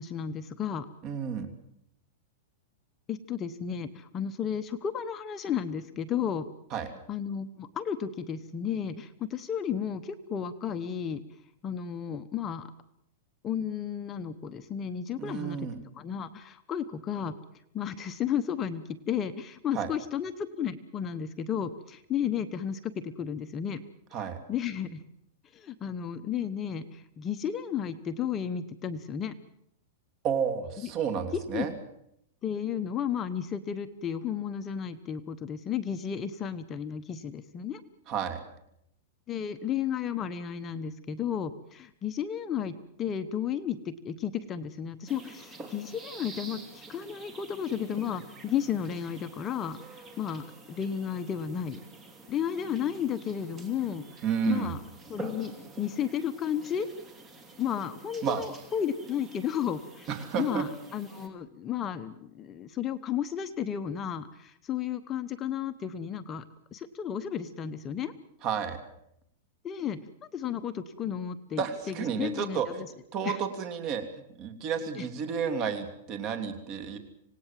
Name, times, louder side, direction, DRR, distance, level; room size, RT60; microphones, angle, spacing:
voice 1, 0.0-0.9 3.1-6.5 6.8-11.2 11.6-12.7 13.4-15.7 16.0-17.4 17.7-23.8 24.5-25.0 25.5-29.3 30.8-30.9 31.5-31.7 32.4-37.8 39.3-51.8 52.3-54.0 54.5-54.8 55.1-55.5 55.8-56.9 57.6-60.1 60.3-66.4 66.7-68.1 69.6-70.0 70.3-72.7 73.2-73.4 75.0-75.1, left 8 dB, 20° left, 9 dB, 1.0 m, -33 dB
voice 2, 1.0-1.5 6.7-6.9 15.2-15.8 19.7-19.9 24.1-24.4 30.2-31.7 38.1-38.4 54.2-54.7 58.2-58.4 60.1-60.7 68.4-68.8 71.6-72.8 73.1-74.0 74.3-77.0, right 7 dB, 35° right, 8 dB, 3.1 m, -31 dB
sound 1, 45.1-61.3, right 3 dB, 15° right, 2.8 m, -48 dB
26.5 x 18.5 x 7.6 m, 0.76 s
supercardioid pair, 155°, 0 cm